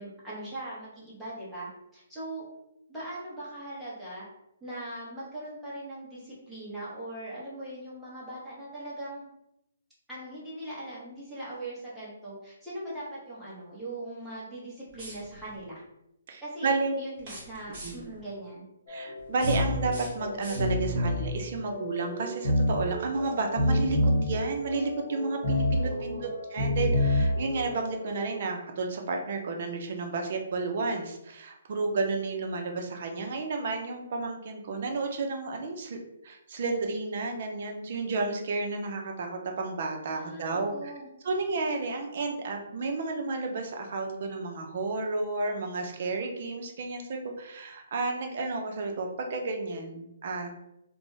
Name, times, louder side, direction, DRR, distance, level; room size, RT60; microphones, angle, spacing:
voice 1, 0.0-2.4 2.9-4.3 4.6-9.2 10.1-15.8 16.4-16.7 17.0-18.6 25.5-25.7 26.0-26.3 40.2-41.1, right 1 dB, 5° right, -10 dB, 0.7 m, -40 dB
sound 1, 14.9-15.6 17.2-18.2 19.2-21.0, right 1 dB, 25° right, 1.0 m, -45 dB
voice 2, 16.3-16.9 17.8-18.0 18.9-36.0 36.2-40.9 41.2-50.5, right 3 dB, 40° right, 3 dB, 0.5 m, -32 dB
sound 2, 18.9-28.3, left 1 dB, 45° left, 0.7 m, -29 dB
2.4 x 2.0 x 3.7 m, 0.84 s
hypercardioid pair, 170°, 0 cm